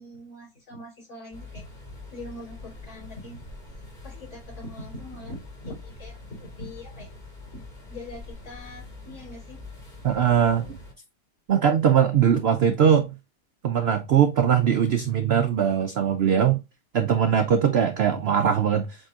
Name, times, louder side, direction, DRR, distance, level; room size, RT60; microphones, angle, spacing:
voice 1, 0.0-1.6 2.1-3.5 4.0-7.1 7.5-9.6 10.0-10.1, left 1 dB, 65° left, 3.4 m, -42 dB
sound 1, 1.3-10.9, left 3 dB, 30° left, 1.6 m, -44 dB
voice 2, 10.0-10.8 11.5-13.1 13.6-16.6 16.9-19.1, right 8 dB, 85° right, 0.5 m, -21 dB
7.7 x 2.8 x 2.4 m
omnidirectional pair, 1.7 m